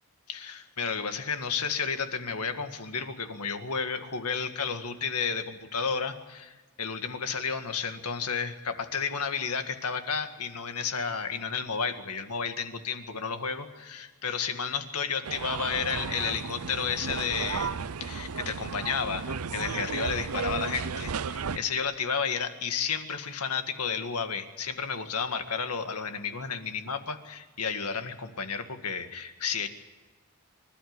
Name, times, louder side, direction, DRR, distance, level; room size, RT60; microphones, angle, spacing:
voice 1, 0.3-29.7, left 6 dB, 85° left, 7 dB, 1.9 m, -32 dB
sound 1, 15.2-21.6, right 5 dB, 70° right, 0.7 m, -34 dB
25.5 x 13.0 x 9.6 m, 1.3 s
head